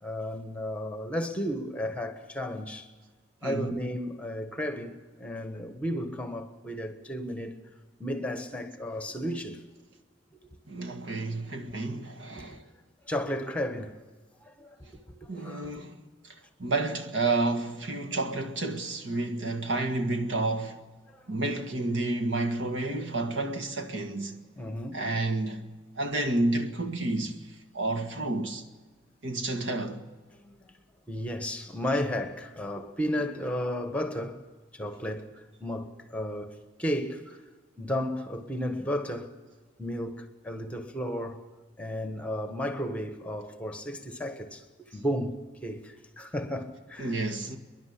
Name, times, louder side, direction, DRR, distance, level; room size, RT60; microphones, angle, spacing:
voice 1, 0.0-2.9 3.4-7.6 8.0-9.6 11.7-11.8 12.4-12.5 13.0-14.0 14.4-15.8 21.1-21.4 24.6-25.0 30.3-30.7 31.1-34.4 34.7-37.4 37.8-39.3 39.8-41.4 41.8-47.2, equal, 5° left, 1.4 m, -34 dB
voice 2, 3.4-3.8 10.7-12.6 15.3-20.8 21.3-24.4 24.9-28.6 29.2-30.0 47.0-47.6, right 2 dB, 80° right, 1.8 m, -30 dB
28.5 x 11.0 x 8.4 m
head